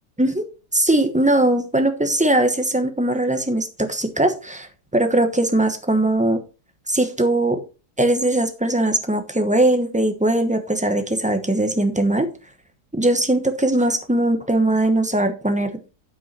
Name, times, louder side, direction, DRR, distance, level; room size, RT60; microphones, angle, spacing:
voice 1, 0.7-6.4 6.9-7.6 8.0-12.3 12.9-15.7, right 1 dB, 5° right, 7 dB, 0.8 m, -20 dB
9.4 x 5.6 x 4.2 m, 0.33 s
omnidirectional pair, 1.7 m